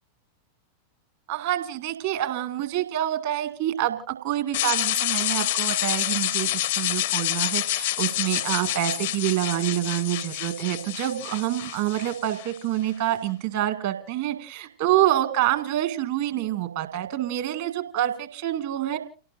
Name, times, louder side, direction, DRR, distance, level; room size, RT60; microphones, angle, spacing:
voice 1, 1.3-19.0, right 13 dB, 50° right, 9 dB, 1.9 m, -27 dB
sound 1, 4.5-12.6, left 15 dB, 55° left, 0.7 m, -28 dB
29.5 x 18.0 x 2.6 m, 0.41 s
figure-of-eight pair, 90°, 0 cm